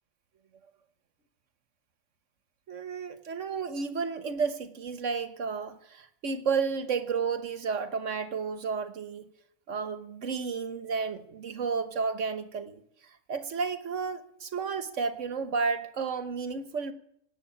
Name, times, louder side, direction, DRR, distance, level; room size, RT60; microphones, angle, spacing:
voice 1, 2.7-9.2 9.7-12.8 13.3-16.9, right 5 dB, 90° right, 1.5 m, -32 dB
18.0 x 8.0 x 9.9 m
omnidirectional pair, 1.2 m